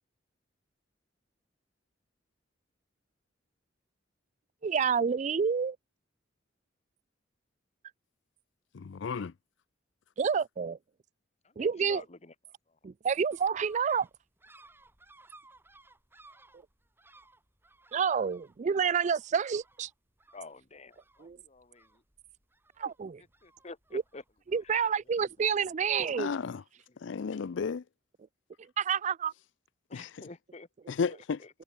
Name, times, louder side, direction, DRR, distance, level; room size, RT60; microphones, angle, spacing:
voice 1, 4.6-5.8 10.2-10.8 11.6-12.0 12.8-14.1 17.9-19.9 21.2-21.4 22.8-23.2 23.9-24.0 24.5-26.4 28.8-29.3, right 6 dB, 35° right, 0.3 m, -28 dB
voice 2, 8.7-9.3 26.2-26.6 27.0-27.8 29.9-30.1 30.9-31.4, left 5 dB, 65° left, 0.4 m, -33 dB
voice 3, 11.4-12.3 12.7-12.8 20.3-22.0 23.2-24.2 24.6-24.7 25.1-25.2 25.9-26.0 26.9-27.0 29.9-30.7 31.1-31.5, left 3 dB, 35° left, 1.2 m, -50 dB
sound 1, 13.3-26.3, right 2 dB, 10° right, 3.2 m, -61 dB
head